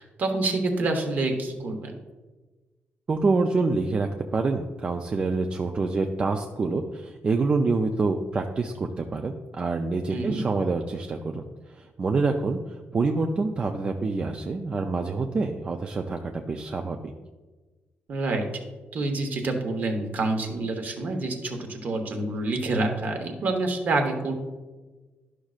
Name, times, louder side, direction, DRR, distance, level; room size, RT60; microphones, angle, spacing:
voice 1, 0.0-1.9 10.1-10.4 18.1-18.4 18.9-24.3, right 2 dB, 45° right, 4 dB, 1.0 m, -27 dB
voice 2, 3.1-17.0, right 3 dB, 30° right, 4 dB, 0.4 m, -26 dB
11.5 x 6.2 x 2.4 m, 1.3 s
wide cardioid pair, 170°, 4 cm